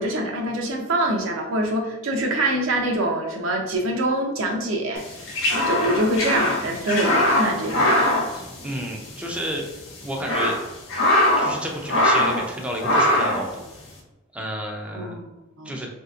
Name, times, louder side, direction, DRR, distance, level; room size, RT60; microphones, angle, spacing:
voice 1, 0.0-5.0 5.7-8.0 14.9-15.3 15.6-15.8, right 1 dB, 90° right, 2 dB, 0.6 m, -24 dB
sound 1, 5.0-9.1 9.4-9.5 10.0-11.6 11.9-12.5 12.8-13.5, left 1 dB, 70° left, 0.7 m, -21 dB
voice 2, 8.3-10.6 11.4-13.6 14.3-15.2 15.6-15.9, equal, 5° right, 0 dB, 0.4 m, -31 dB
3.2 x 2.8 x 2.4 m, 1.0 s
head